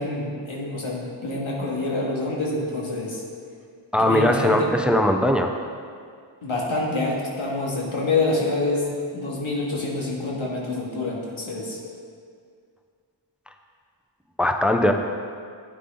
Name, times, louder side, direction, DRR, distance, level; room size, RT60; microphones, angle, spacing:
voice 1, 0.0-3.2 4.0-4.7 6.4-11.8, left 2 dB, 80° left, -3 dB, 2.3 m, -26 dB
voice 2, 3.9-5.5 14.4-14.9, left 1 dB, ahead, 4 dB, 0.7 m, -20 dB
12.0 x 8.7 x 3.9 m, 2.2 s
cardioid pair, 50°, 47 cm